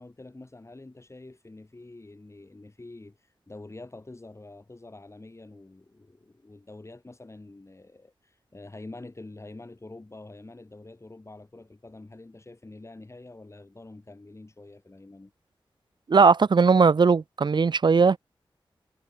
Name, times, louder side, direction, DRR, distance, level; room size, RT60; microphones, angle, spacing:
voice 1, 0.0-3.2 3.5-15.3, left 2 dB, 30° left, 7.0 m, -46 dB
voice 2, 16.1-18.2, right 5 dB, 55° right, 0.6 m, -19 dB
wide cardioid pair, 70°, 9 cm